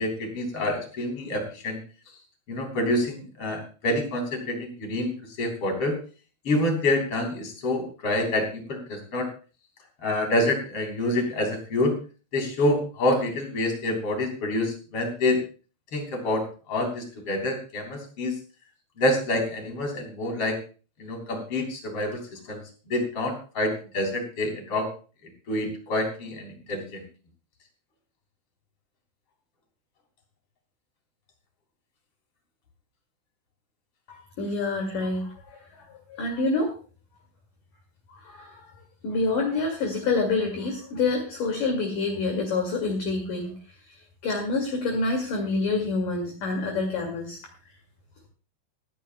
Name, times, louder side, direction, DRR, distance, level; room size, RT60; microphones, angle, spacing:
voice 1, 0.0-1.8 2.5-5.1 5.4-6.0 6.4-9.3 10.0-11.9 12.3-15.4 15.9-18.3 19.0-20.6 21.0-22.6 22.9-24.9 25.5-27.0, left 1 dB, 30° left, 3 dB, 3.8 m, -27 dB
voice 2, 34.1-35.6 36.1-36.7 38.2-38.7 39.0-43.5 44.2-47.4, left 3 dB, 50° left, 2 dB, 3.1 m, -27 dB
26.5 x 10.0 x 2.2 m, 0.36 s
omnidirectional pair, 5.8 m